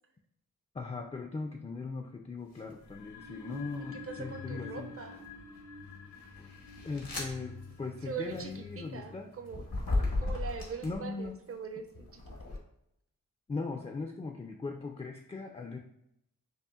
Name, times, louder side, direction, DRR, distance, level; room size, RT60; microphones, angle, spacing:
voice 1, 0.7-4.9 6.8-9.3 10.8-11.4 13.5-15.8, left 3 dB, 20° left, 3 dB, 0.3 m, -39 dB
sound 1, 2.5-2.8 3.5-4.2 4.9-11.3 11.9-12.6, left 2 dB, 85° left, 1.2 m, -37 dB
sound 2, 2.8-9.7, left 4 dB, 60° left, 0.6 m, -47 dB
voice 2, 3.9-5.2 8.0-9.7 10.2-12.4, right 6 dB, 40° right, 6 dB, 0.5 m, -42 dB
5.5 x 2.4 x 2.4 m, 0.78 s
wide cardioid pair, 80°, 34 cm